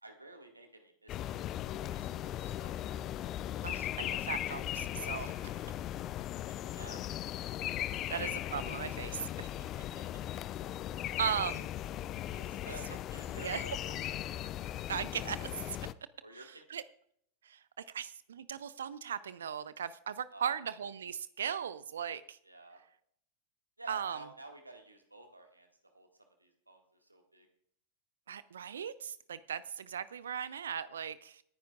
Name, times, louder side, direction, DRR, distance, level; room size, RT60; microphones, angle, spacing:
voice 1, 0.0-1.4 1.7-2.9 5.3-5.8 6.7-7.0 7.9-8.1 11.4-11.6 12.3-14.5 16.2-16.8 20.3-20.6 22.4-22.8 23.8-25.7 25.9-26.1 26.4-27.5, right 2 dB, 85° right, 4 dB, 1.8 m, -52 dB
sound 1, 1.1-15.9, left 12 dB, 35° left, 0.4 m, -38 dB
voice 2, 3.6-5.3 8.1-9.5 11.2-11.6 13.4-13.6 14.9-15.8 16.3-16.8 17.4-22.4 23.9-24.2 28.3-31.4, right 8 dB, 65° right, 17 dB, 0.5 m, -38 dB
27.5 x 10.0 x 2.4 m, 0.68 s
figure-of-eight pair, 90°, 0 cm